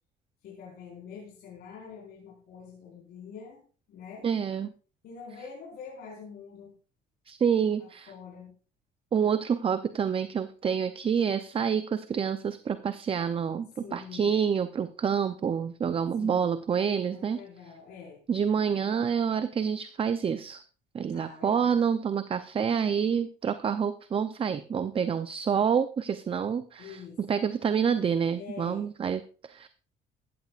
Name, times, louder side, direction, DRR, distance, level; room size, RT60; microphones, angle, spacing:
voice 1, 0.4-3.6 3.9-4.3 5.0-6.7 7.8-8.5 13.8-14.4 16.2-16.6 17.0-18.2 21.1-22.0 26.8-27.2 28.4-28.9, left 6 dB, 70° left, -4 dB, 5.0 m, -45 dB
voice 2, 4.2-4.7 7.3-8.1 9.1-17.4 18.3-20.6 20.9-29.7, right 7 dB, 35° right, 11 dB, 0.6 m, -28 dB
15.0 x 13.5 x 2.5 m, 0.37 s
cardioid pair, 110°, 17 cm